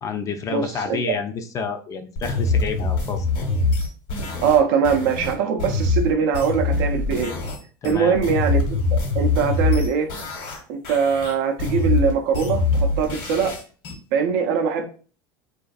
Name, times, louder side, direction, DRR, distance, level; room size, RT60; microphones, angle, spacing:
voice 1, 0.0-3.3 7.8-8.2, left 5 dB, 30° left, 7 dB, 0.4 m, -29 dB
voice 2, 0.5-1.0 4.4-7.4 7.8-10.1 10.7-13.5 14.1-14.9, right 6 dB, 70° right, 5 dB, 0.5 m, -22 dB
sound 1, 2.2-7.6 7.8-10.6 10.8-13.9, left 3 dB, 70° left, 1.1 m, -23 dB
2.4 x 2.4 x 2.3 m, 0.38 s
supercardioid pair, 105°, 11 cm